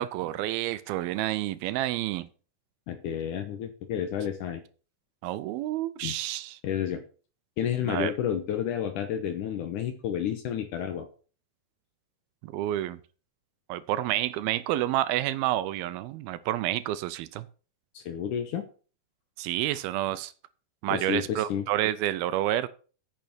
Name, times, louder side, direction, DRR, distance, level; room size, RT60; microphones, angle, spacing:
voice 1, 0.0-2.3 5.2-6.6 7.8-8.1 12.4-13.0 13.7-17.5 19.4-20.3 20.8-22.7, right 14 dB, 80° right, 2.4 m, -29 dB
voice 2, 2.9-4.6 6.0-6.1 6.6-7.0 7.6-11.1 17.9-18.6 20.9-21.7, left 9 dB, 70° left, 2.1 m, -30 dB
9.1 x 6.8 x 6.8 m
omnidirectional pair, 4.5 m